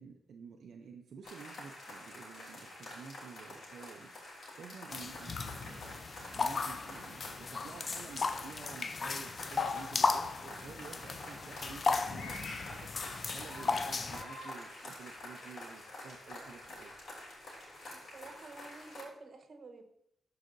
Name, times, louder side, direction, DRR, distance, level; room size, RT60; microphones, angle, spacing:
voice 1, 0.0-6.0 6.3-16.9, right 6 dB, 75° right, 3 dB, 0.5 m, -51 dB
sound 1, 1.2-19.0, left 1 dB, 70° left, 3.2 m, -47 dB
sound 2, 4.9-14.2, left 4 dB, 50° left, 0.4 m, -35 dB
voice 2, 17.9-19.8, right 3 dB, 50° right, 6 dB, 1.2 m, -50 dB
12.5 x 4.8 x 2.6 m, 0.76 s
cardioid pair, 80°, 0 cm